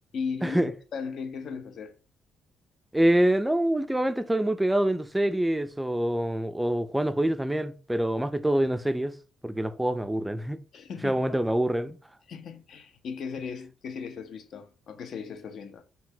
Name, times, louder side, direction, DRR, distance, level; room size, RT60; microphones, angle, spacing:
voice 1, 0.1-1.9 10.7-11.6 12.3-15.8, left 5 dB, 65° left, 0.5 m, -37 dB
voice 2, 2.9-9.2 9.4-10.6 11.0-12.0, right 1 dB, 10° right, 0.3 m, -25 dB
3.8 x 2.2 x 2.7 m
cardioid pair, 90°, 0 cm